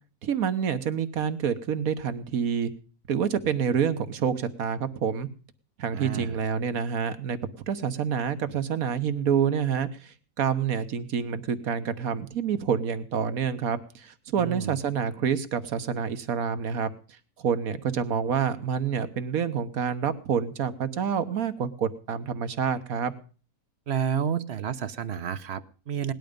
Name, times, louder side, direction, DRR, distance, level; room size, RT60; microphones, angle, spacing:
voice 1, 0.2-2.7 3.1-5.3 5.8-7.4 7.7-16.9 17.4-23.1, right 7 dB, 70° right, 11 dB, 1.6 m, -27 dB
voice 2, 5.9-6.4 14.4-14.8 23.9-26.1, right 8 dB, 50° right, 14 dB, 1.0 m, -30 dB
18.5 x 11.5 x 5.2 m, 0.38 s
omnidirectional pair, 1.6 m